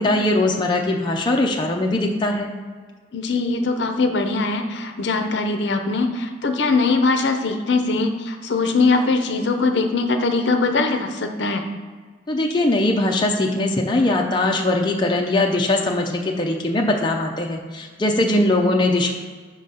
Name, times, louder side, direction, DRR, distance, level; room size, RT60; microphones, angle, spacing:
voice 1, 0.0-2.5 12.3-19.1, left 2 dB, 25° left, 1 dB, 0.5 m, -21 dB
voice 2, 3.1-11.6, left 3 dB, 65° left, 6 dB, 0.6 m, -21 dB
5.1 x 3.9 x 5.6 m, 1.5 s
head